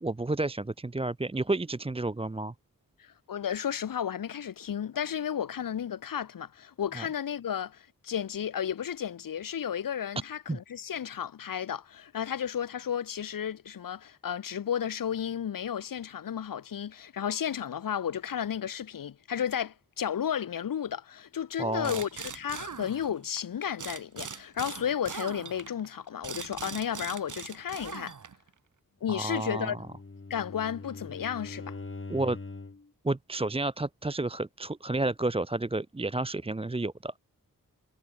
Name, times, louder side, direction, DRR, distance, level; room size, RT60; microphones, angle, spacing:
voice 1, 0.0-2.5 7.0-7.1 10.5-10.6 21.6-22.0 29.1-29.7 32.1-32.4 33.0-37.2, right 2 dB, 15° right, 0.7 m, -31 dB
voice 2, 3.0-28.2 29.0-29.9 30.3-31.8, left 9 dB, 70° left, 0.7 m, -33 dB
sound 1, 21.8-23.4 23.8-28.5, right 6 dB, 60° right, 1.1 m, -41 dB
Bowed string instrument, 29.3-32.9, left 3 dB, 35° left, 2.5 m, -43 dB
wide cardioid pair, 75°, 34 cm